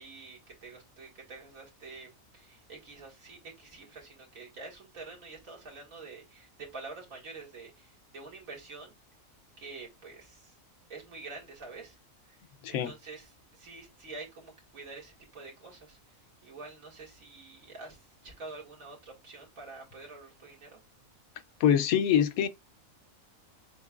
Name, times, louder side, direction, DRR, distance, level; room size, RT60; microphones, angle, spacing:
voice 1, 0.0-2.1 2.3-8.9 9.6-10.5 10.9-12.0 12.3-12.4 12.7-16.0 16.4-20.8, right 3 dB, 80° right, 2.4 m, -47 dB
voice 2, 21.6-22.5, left 9 dB, 90° left, 1.1 m, -24 dB
6.9 x 3.1 x 2.3 m
omnidirectional pair, 1.4 m